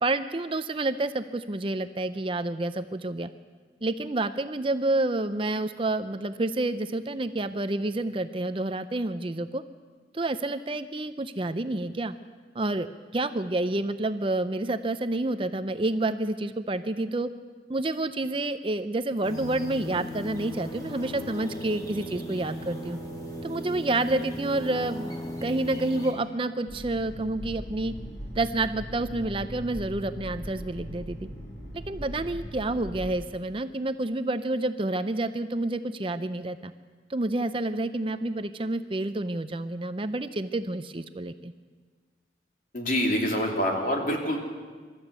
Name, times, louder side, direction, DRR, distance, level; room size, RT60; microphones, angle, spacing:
voice 1, 0.0-3.3 3.8-9.6 10.1-12.1 12.5-12.9 13.1-17.3 17.7-23.0 23.4-25.2 25.4-27.9 28.4-31.2 31.9-36.7 37.1-41.5, right 2 dB, 30° right, 10 dB, 0.6 m, -29 dB
sound 1, 19.2-26.1, equal, 20° left, 3.3 m, -37 dB
sound 2, 26.7-33.1, equal, 80° left, 5.6 m, -39 dB
voice 2, 42.7-44.4, equal, 50° left, 1 dB, 3.2 m, -26 dB
24.5 x 13.5 x 8.2 m, 1.5 s
head